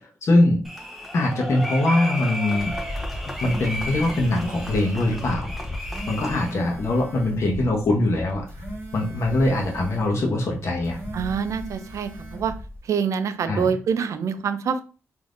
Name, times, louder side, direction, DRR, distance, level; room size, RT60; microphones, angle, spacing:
voice 1, 0.0-0.6 1.1-2.7 3.4-5.5 6.1-8.5 8.9-11.0 13.5-13.7, left 2 dB, 60° left, 0 dB, 0.8 m, -22 dB
sound 1, 0.6-6.5, left 1 dB, 5° right, 0.8 m, -33 dB
sound 2, 2.6-12.8, left 1 dB, 30° left, 0.5 m, -37 dB
sound 3, 3.1-5.0 5.6-7.4 8.3-10.1 10.7-12.5, right 3 dB, 50° right, 1.3 m, -41 dB
voice 2, 11.1-12.5 12.8-14.8, right 6 dB, 70° right, 11 dB, 0.4 m, -25 dB
3.5 x 2.6 x 2.5 m, 0.36 s
cardioid pair, 80°, 5 cm